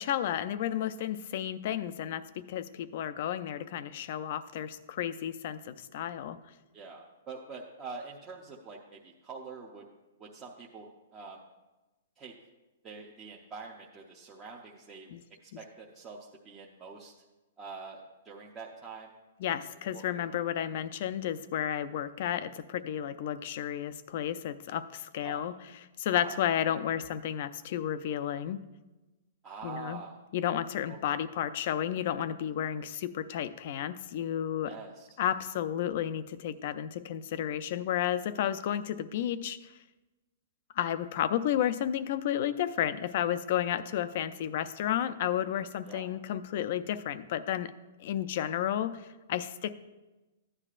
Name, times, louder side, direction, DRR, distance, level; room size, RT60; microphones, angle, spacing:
voice 1, 0.0-6.4 15.1-15.2 15.5-15.6 19.4-25.5 26.0-28.6 29.6-30.0 30.3-34.7 35.2-39.7 40.8-47.7 48.0-49.7, left 10 dB, 40° left, 13 dB, 0.4 m, -32 dB
voice 2, 6.7-9.9 10.2-10.9 11.1-11.4 12.2-12.3 12.8-15.1 15.6-17.1 17.6-18.0 18.2-19.1 19.7-20.2 25.2-25.4 26.1-26.4 29.4-30.2 30.8-31.2 34.7-35.2 45.9-46.1, right 4 dB, 15° right, -3 dB, 0.7 m, -45 dB
14.5 x 9.8 x 2.5 m, 1.1 s
hypercardioid pair, 175°, 0 cm